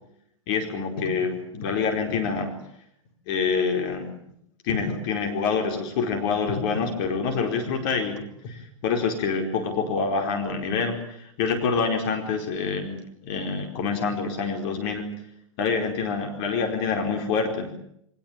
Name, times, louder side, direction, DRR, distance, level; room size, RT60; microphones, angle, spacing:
voice 1, 0.5-2.5 3.3-4.1 4.6-13.0 13.2-15.1 15.6-17.8, left 5 dB, 45° left, 4 dB, 4.6 m, -26 dB
23.5 x 19.0 x 8.9 m, 0.73 s
hypercardioid pair, 110°, 17 cm